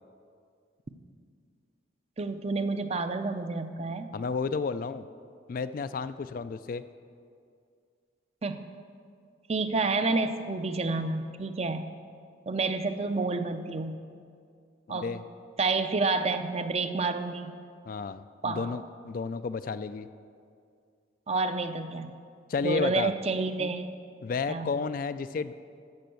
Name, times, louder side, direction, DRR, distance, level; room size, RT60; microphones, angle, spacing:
voice 1, 2.2-4.1 8.4-8.7 9.5-11.9 12.5-14.0 14.9-15.1 15.6-17.6 18.4-18.8 21.3-22.2 22.6-23.9 24.5-24.7, right 3 dB, 35° right, 9 dB, 0.5 m, -29 dB
voice 2, 4.1-5.1 5.5-6.8 14.9-15.2 17.9-20.1 22.5-23.1 24.2-25.5, left 5 dB, 45° left, 13 dB, 0.3 m, -32 dB
13.5 x 5.3 x 7.7 m, 2.3 s
head